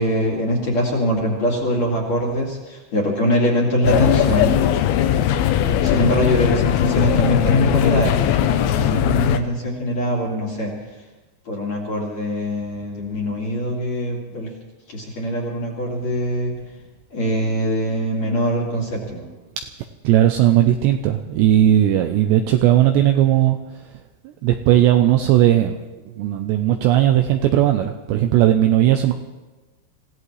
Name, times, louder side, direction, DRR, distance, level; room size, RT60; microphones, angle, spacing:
voice 1, 0.0-4.6 5.8-10.7 11.5-14.5 14.9-16.5 17.1-19.3, equal, 45° left, -2 dB, 2.8 m, -22 dB
sound 1, 3.8-9.4, left 10 dB, 85° left, 3.4 m, -19 dB
voice 2, 20.0-23.6 24.4-25.8 26.2-29.1, right 12 dB, 80° right, 6 dB, 2.5 m, -17 dB
27.0 x 16.5 x 3.3 m, 1.2 s
omnidirectional pair, 5.7 m